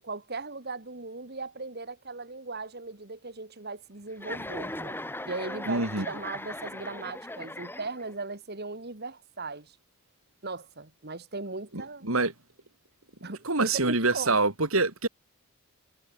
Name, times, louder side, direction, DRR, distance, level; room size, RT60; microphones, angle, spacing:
voice 1, 0.0-5.0 5.3-9.7 10.4-12.1 13.2-14.4, right 3 dB, 45° right, 1.8 m, -38 dB
Chuckle chortle, 4.2-8.2, left 1 dB, 10° left, 5.6 m, -38 dB
voice 2, 5.7-6.1 11.7-12.3 13.2-15.1, right 3 dB, 70° right, 3.7 m, -26 dB
head